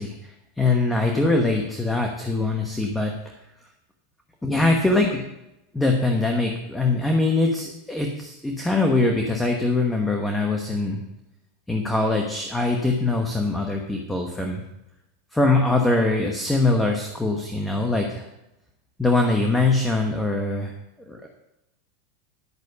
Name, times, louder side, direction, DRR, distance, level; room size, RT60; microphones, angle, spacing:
voice 1, 0.0-3.1 4.4-5.2 5.7-11.0 11.7-14.6 15.3-18.3 19.0-20.7 21.1-21.3, left 2 dB, 5° left, 2 dB, 1.1 m, -22 dB
11.0 x 6.2 x 6.8 m, 0.91 s
supercardioid pair, 140°, 0 cm